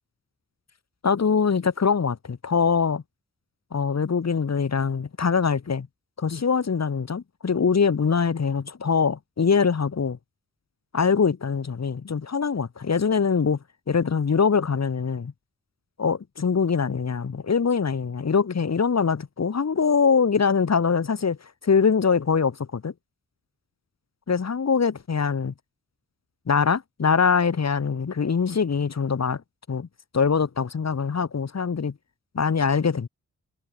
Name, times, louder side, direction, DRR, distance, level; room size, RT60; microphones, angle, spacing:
voice 1, 1.0-3.0 3.7-5.9 6.2-10.2 10.9-13.6 13.9-15.3 16.0-22.9 24.3-25.5 26.5-29.4 29.7-29.9 30.1-31.9 32.3-33.1, left 5 dB, 60° left, 7.4 m, -23 dB
wide cardioid pair, 105°, 30 cm